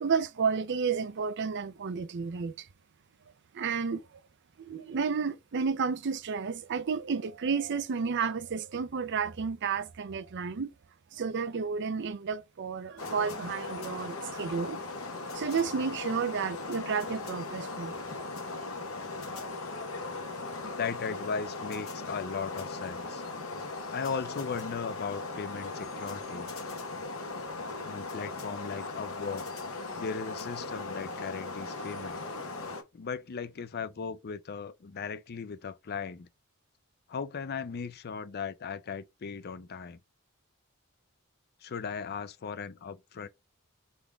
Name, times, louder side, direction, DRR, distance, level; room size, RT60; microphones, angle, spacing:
voice 1, 0.0-2.7 3.5-4.0 4.7-10.7 11.1-14.8 15.3-18.2, right 5 dB, 55° right, 0.5 m, -31 dB
sound 1, 13.0-32.8, left 3 dB, 70° left, 1.2 m, -38 dB
voice 2, 20.6-23.2 23.9-26.5 27.8-29.4 30.0-32.2 32.9-36.3 37.1-40.0 41.6-43.3, left 5 dB, 50° left, 0.5 m, -37 dB
4.0 x 3.5 x 3.5 m
head